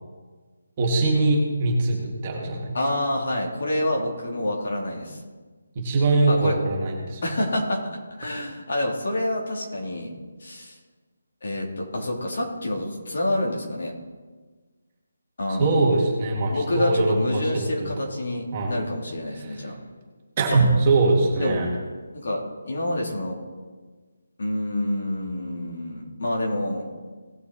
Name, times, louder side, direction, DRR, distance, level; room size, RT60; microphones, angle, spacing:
voice 1, 0.8-2.8 5.8-7.2 15.5-17.9 18.5-18.7 19.4-19.5 20.4-21.7, right 2 dB, 25° right, -1 dB, 2.0 m, -22 dB
voice 2, 2.7-5.2 6.3-6.6 7.2-10.1 10.4-10.8 11.4-13.9 15.4-15.9 16.5-19.7 21.4-21.6 22.1-22.4 22.6-23.4 24.4-26.9, left 1 dB, 55° left, -1 dB, 3.1 m, -27 dB
18.0 x 6.7 x 4.2 m, 1.4 s
hypercardioid pair, 170°, 0 cm